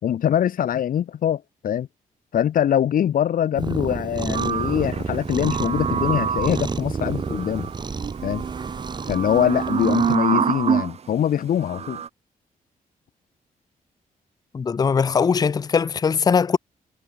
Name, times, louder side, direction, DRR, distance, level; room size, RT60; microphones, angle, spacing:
voice 1, 0.0-1.9 2.3-7.7 8.2-8.4 9.1-12.0, left 10 dB, 65° left, 1.9 m, -23 dB
Cat, 3.5-10.2, right 4 dB, 30° right, 2.8 m, -30 dB
sound 1, 4.3-11.0 11.6-12.1, right 7 dB, 45° right, 1.9 m, -26 dB
voice 2, 14.5-16.6, left 6 dB, 25° left, 0.5 m, -20 dB
wide cardioid pair, 150°, 15 cm